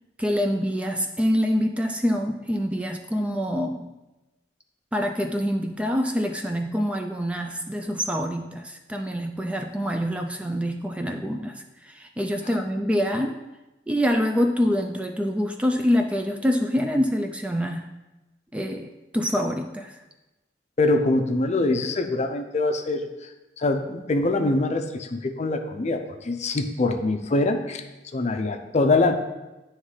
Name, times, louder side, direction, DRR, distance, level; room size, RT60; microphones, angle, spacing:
voice 1, 0.2-3.9 4.9-13.4 13.9-18.0 18.5-20.0, equal, 5° right, 4 dB, 0.3 m, -26 dB
voice 2, 20.8-23.3 23.6-27.8 28.1-29.1, left 2 dB, 40° left, 6 dB, 0.5 m, -24 dB
9.6 x 3.2 x 4.8 m, 1.0 s
head